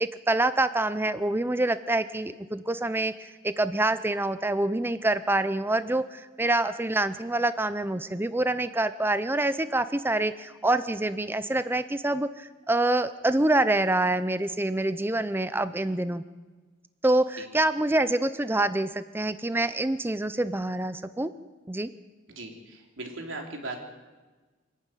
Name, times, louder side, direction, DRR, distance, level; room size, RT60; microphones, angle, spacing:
voice 1, 0.0-16.2 17.0-21.3 21.7-21.9, right 2 dB, 10° right, 12 dB, 0.6 m, -26 dB
voice 2, 22.3-23.9, right 2 dB, 90° right, 2 dB, 3.6 m, -38 dB
25.0 x 12.0 x 9.1 m, 1.3 s
head